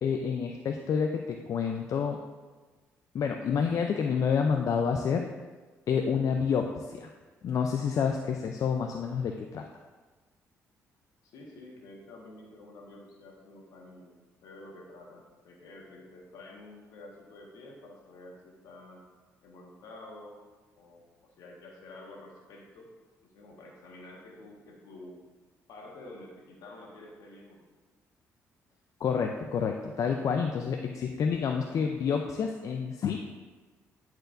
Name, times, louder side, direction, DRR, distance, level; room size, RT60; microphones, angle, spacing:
voice 1, 0.0-2.2 3.1-5.2 5.9-7.1 7.4-9.7 29.0-33.2, left 6 dB, 60° left, 3 dB, 0.5 m, -28 dB
voice 2, 11.2-19.0 19.4-20.4 20.7-21.1 21.4-22.9 23.2-25.2 25.7-27.6, left 2 dB, 75° left, -1 dB, 1.5 m, -49 dB
9.8 x 4.5 x 2.6 m, 1.3 s
supercardioid pair, 60°, 6 cm